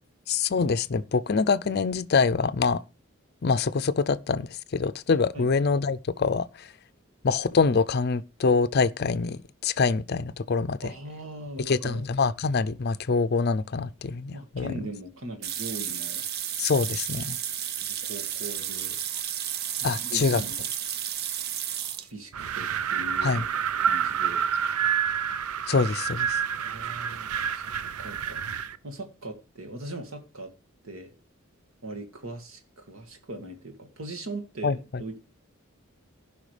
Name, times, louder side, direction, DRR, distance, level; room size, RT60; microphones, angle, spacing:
voice 1, 0.3-2.8 3.4-6.7 7.2-10.9 11.6-14.9 16.6-17.4 19.8-20.4 23.2-23.5 25.7-26.4 34.6-34.8, left 4 dB, 45° left, 0.5 m, -25 dB
voice 2, 10.8-12.1 14.3-16.2 17.8-19.0 20.0-20.7 22.0-23.5 23.8-24.5 26.6-27.7 28.0-28.4 28.8-30.5 30.8-31.1 31.8-35.2, right 2 dB, 70° right, 2.0 m, -40 dB
sound 1, 15.4-22.1, right 10 dB, 45° right, 0.6 m, -32 dB
Wind, 22.3-28.8, right 8 dB, 85° right, 0.5 m, -28 dB
16.0 x 5.7 x 3.3 m
head